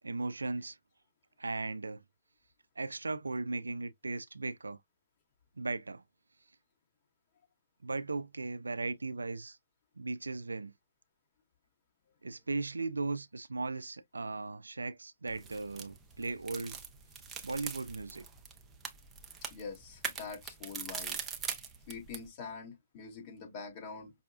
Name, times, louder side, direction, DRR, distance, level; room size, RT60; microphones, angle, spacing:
voice 1, 0.0-0.8 1.4-2.0 2.8-4.8 5.6-6.0 7.8-9.6 10.0-10.7 12.2-16.8 17.4-18.3, right 3 dB, 90° right, 0.3 m, -37 dB
sound 1, 15.3-22.3, right 6 dB, 15° right, 0.6 m, -42 dB
voice 2, 19.5-21.2 21.9-24.1, left 5 dB, 35° left, 1.9 m, -44 dB
5.4 x 2.3 x 2.3 m
hypercardioid pair, 135°, 0 cm